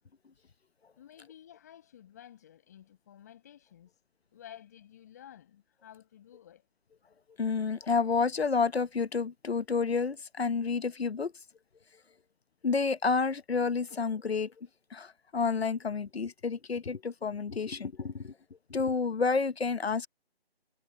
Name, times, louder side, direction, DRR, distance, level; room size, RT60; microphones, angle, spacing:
voice 1, 1.0-4.0 4.3-6.6, left 10 dB, 15° left, 6.3 m, -53 dB
voice 2, 7.4-11.3 12.6-14.5 14.9-18.3 18.7-20.1, left 5 dB, 75° left, 1.1 m, -30 dB
hypercardioid pair, 180°, 31 cm